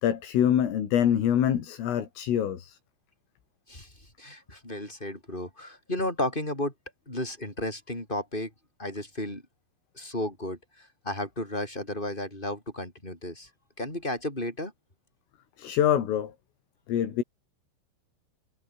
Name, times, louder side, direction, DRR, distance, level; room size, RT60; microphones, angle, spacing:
voice 1, 0.0-2.8 15.6-16.3 16.9-17.2, left 10 dB, 75° left, 5.7 m, -25 dB
voice 2, 4.2-6.7 7.1-8.5 8.8-9.4 10.0-13.5 13.8-14.7, left 1 dB, 10° left, 6.9 m, -33 dB
omnidirectional pair, 5.9 m